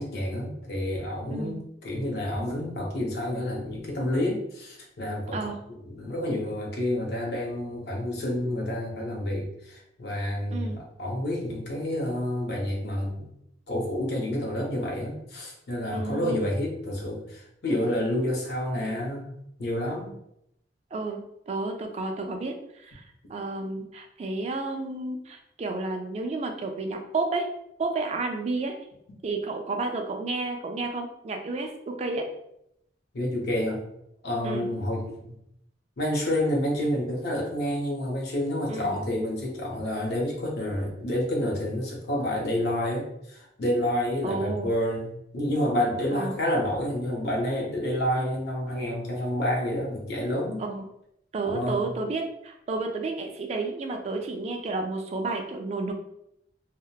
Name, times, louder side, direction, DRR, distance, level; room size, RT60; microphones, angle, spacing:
voice 1, 0.0-13.3 13.7-20.1 33.1-33.8 34.2-35.3 36.0-50.6 51.4-51.8, left 1 dB, 65° left, -1 dB, 0.6 m, -29 dB
voice 2, 15.9-16.5 20.9-22.5 22.8-23.0 23.3-27.5 27.8-28.7 29.2-32.3 34.4-34.7 38.7-39.0 44.2-44.7 46.1-46.3 50.6-50.8 51.3-55.9, right 3 dB, 35° right, 4 dB, 0.3 m, -31 dB
2.7 x 2.0 x 2.2 m, 0.77 s
head